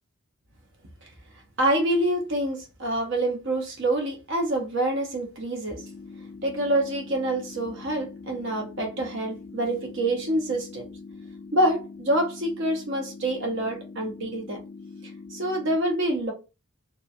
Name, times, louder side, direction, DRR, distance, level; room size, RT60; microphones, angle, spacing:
voice 1, 1.6-5.8 6.4-10.8 11.5-14.6 15.3-16.3, right 1 dB, 55° right, 0.7 m, -26 dB
sound 1, 5.8-15.8, left 4 dB, 50° left, 0.4 m, -43 dB
2.8 x 2.2 x 2.5 m
head